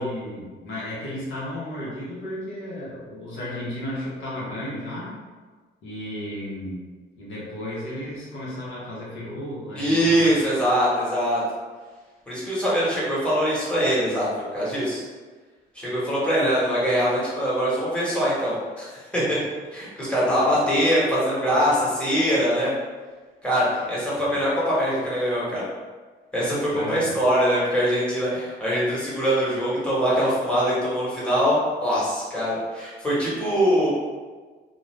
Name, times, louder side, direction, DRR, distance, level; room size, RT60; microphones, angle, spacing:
voice 1, 0.0-5.2 5.8-6.9 7.2-10.4 20.3-20.6 24.2-24.4 26.7-27.1, left 1 dB, 85° left, -6 dB, 0.9 m, -34 dB
voice 2, 9.7-11.4 12.3-14.3 14.5-15.0 15.7-19.4 19.7-22.7 23.4-25.6 26.3-33.9, equal, 5° left, -8 dB, 1.2 m, -23 dB
2.5 x 2.3 x 3.2 m, 1.4 s
cardioid pair, 90°, 20 cm